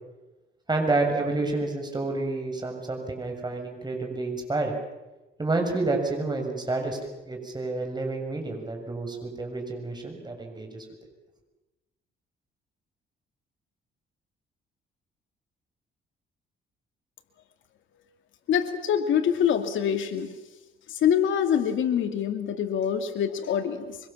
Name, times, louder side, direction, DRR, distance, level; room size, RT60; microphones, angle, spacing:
voice 1, 0.7-4.8 5.4-7.0 7.3-10.8, right 2 dB, 20° right, 3 dB, 7.1 m, -29 dB
voice 2, 18.5-20.3 20.9-24.0, left 8 dB, 80° left, 7 dB, 2.6 m, -25 dB
25.0 x 24.5 x 7.4 m, 1.1 s
cardioid pair, 90°, 20 cm